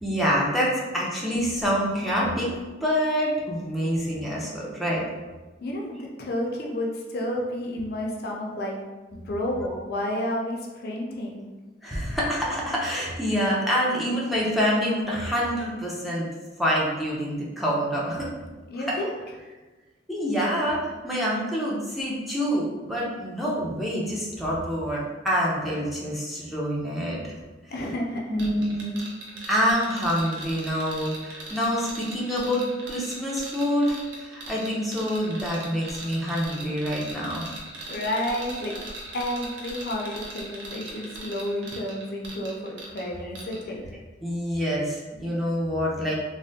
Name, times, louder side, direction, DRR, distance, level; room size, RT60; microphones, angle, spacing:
voice 1, 0.0-2.5 2.8-5.0 9.7-9.8 11.8-16.3 16.6-18.3 18.9-19.0 20.1-27.3 28.3-29.0 29.5-37.4 44.2-46.1, equal, ahead, -6 dB, 0.5 m, -26 dB
voice 2, 5.6-8.7 9.1-11.5 18.7-19.1 27.7-28.3 37.9-38.7 39.1-44.0, left 1 dB, 55° left, -1 dB, 0.4 m, -31 dB
sound 1, 28.4-43.1 43.3-43.6, right 2 dB, 65° right, 0.6 m, -39 dB
3.3 x 2.1 x 2.6 m, 1.2 s
head